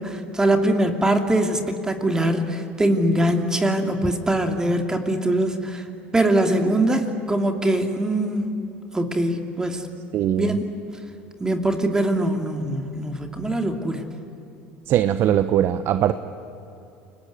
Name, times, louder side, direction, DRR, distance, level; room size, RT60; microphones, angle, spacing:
voice 1, 0.0-5.8 6.1-8.5 8.9-9.8 10.4-10.6 11.4-14.0, right 1 dB, 15° right, 4 dB, 2.9 m, -22 dB
voice 2, 10.1-10.6 14.9-16.1, right 11 dB, 55° right, 11 dB, 1.0 m, -20 dB
29.5 x 20.0 x 9.6 m, 2.8 s
hypercardioid pair, 85°, 5 cm